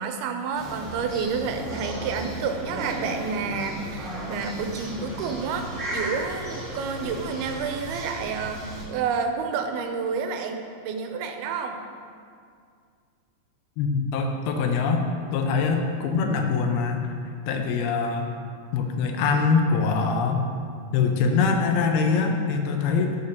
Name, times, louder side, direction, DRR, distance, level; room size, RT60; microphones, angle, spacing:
voice 1, 0.0-11.8, right 5 dB, 90° right, 5 dB, 2.6 m, -29 dB
sound 1, 0.5-8.8, right 1 dB, 35° right, 1.2 m, -35 dB
voice 2, 13.8-17.1 17.5-18.3 18.7-20.5 20.9-23.2, left 5 dB, 85° left, 4 dB, 2.7 m, -23 dB
13.5 x 6.5 x 2.9 m, 2.2 s
omnidirectional pair, 4.3 m